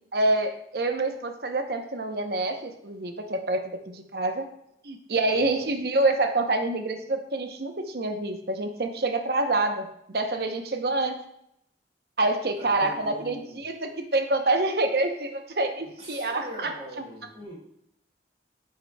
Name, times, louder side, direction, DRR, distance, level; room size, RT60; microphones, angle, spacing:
voice 1, 0.1-4.4 4.8-11.2 12.2-16.7, right 2 dB, 60° right, 6 dB, 0.8 m, -27 dB
voice 2, 5.2-5.6 12.6-13.6 16.0-17.6, equal, 40° right, -4 dB, 2.3 m, -41 dB
10.0 x 6.6 x 2.3 m, 0.76 s
head